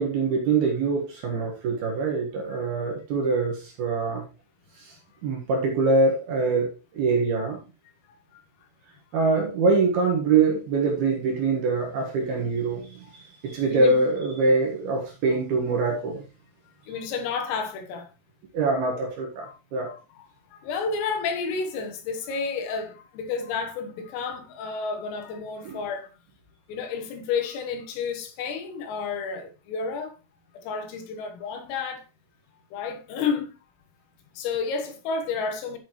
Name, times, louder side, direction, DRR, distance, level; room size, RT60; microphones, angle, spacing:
voice 1, 0.0-4.2 4.8-4.9 5.2-7.6 9.1-16.2 18.5-19.9 25.6-25.8, right 3 dB, 65° right, 2.8 m, -24 dB
voice 2, 8.0-8.4 13.0-13.2 13.7-14.0 15.3-15.4 16.9-18.1 19.4-19.6 19.9-26.1 26.7-30.1 30.5-32.0 32.7-33.6 34.4-35.8, left 5 dB, 80° left, 3.9 m, -31 dB
13.0 x 6.9 x 3.1 m
omnidirectional pair, 5.9 m